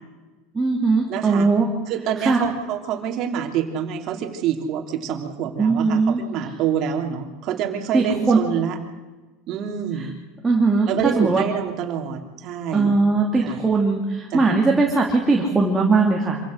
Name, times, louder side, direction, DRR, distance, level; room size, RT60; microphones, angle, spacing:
voice 1, 0.5-1.7 2.2-2.4 5.6-6.2 7.9-8.4 10.4-11.4 12.7-16.4, right 3 dB, 10° right, -1 dB, 2.7 m, -19 dB
voice 2, 1.1-1.5 1.9-8.8 9.5-10.1 10.9-13.0 13.4-13.6 14.3-14.4, right 8 dB, 45° right, 3 dB, 3.2 m, -26 dB
26.0 x 16.0 x 6.5 m, 1.2 s
supercardioid pair, 150°, 0 cm